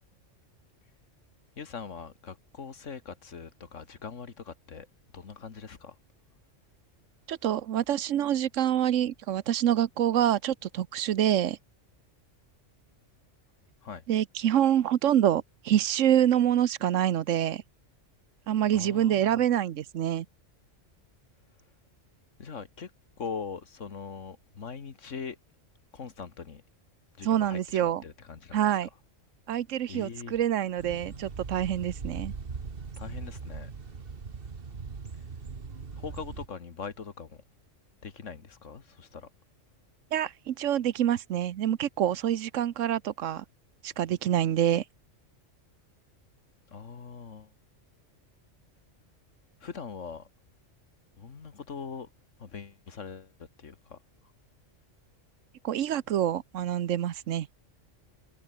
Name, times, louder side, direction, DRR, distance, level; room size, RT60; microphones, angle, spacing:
voice 1, 1.6-4.9 5.1-5.9 13.8-14.0 18.7-19.4 22.4-22.9 23.2-25.4 25.9-26.6 27.2-28.6 29.9-30.3 33.0-33.7 36.0-37.4 38.0-39.3 46.7-47.5 49.6-50.3 51.2-52.1 52.4-53.3 53.6-54.0, left 5 dB, 80° left, 2.0 m, -41 dB
voice 2, 7.3-11.6 14.1-17.6 18.5-20.3 27.2-28.0 28.5-28.9 29.5-32.3 40.1-43.4 43.8-44.8 55.6-57.5, right 11 dB, 85° right, 1.1 m, -26 dB
sound 1, 30.8-36.5, right 5 dB, 50° right, 1.7 m, -40 dB
omnidirectional pair, 1.3 m